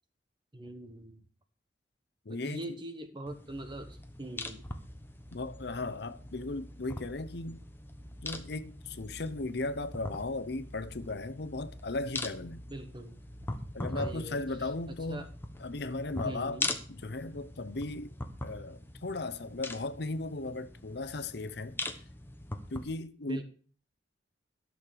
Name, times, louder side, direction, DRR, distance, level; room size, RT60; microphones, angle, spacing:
voice 1, 0.5-1.2 2.3-4.6 12.7-13.2 13.9-15.3 16.2-16.7 23.3-23.4, right 1 dB, 25° right, 1.1 m, -42 dB
voice 2, 2.2-2.8 5.3-7.6 8.2-12.6 13.7-15.3 15.6-18.1 18.4-21.8 22.7-23.4, left 2 dB, 65° left, 0.8 m, -36 dB
sound 1, 3.3-22.8, left 2 dB, 10° left, 1.1 m, -42 dB
12.0 x 6.5 x 6.8 m
head